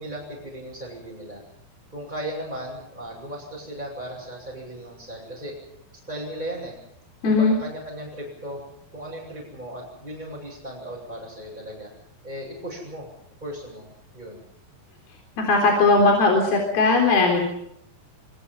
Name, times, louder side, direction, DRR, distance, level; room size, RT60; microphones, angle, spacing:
voice 1, 0.0-1.4 1.9-5.5 6.1-6.8 7.2-8.6 8.9-11.9 12.2-13.1 13.4-13.9 14.1-14.4, right 1 dB, 10° right, -6 dB, 7.9 m, -36 dB
voice 2, 7.2-7.5 15.4-17.4, left 3 dB, 60° left, 1 dB, 5.7 m, -18 dB
26.5 x 24.0 x 5.7 m, 0.75 s
omnidirectional pair, 5.0 m